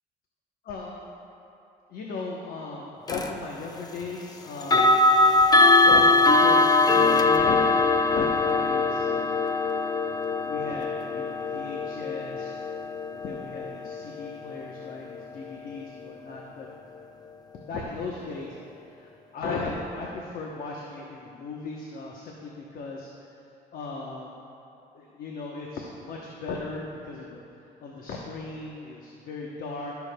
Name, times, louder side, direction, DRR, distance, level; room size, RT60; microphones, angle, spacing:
voice 1, 0.7-1.1 1.9-4.9 5.8-9.4 10.4-12.6 13.1-16.7 17.7-18.5 18.8-23.1 23.7-24.3 24.9-27.4 27.8-29.9, left 3 dB, 60° left, -1 dB, 1.0 m, -36 dB
sound 1, 3.1-3.3 4.6-15.5, left 3 dB, 25° left, 0.6 m, -22 dB
17.5 x 6.9 x 2.3 m, 2.7 s
cardioid pair, 110°, 17 cm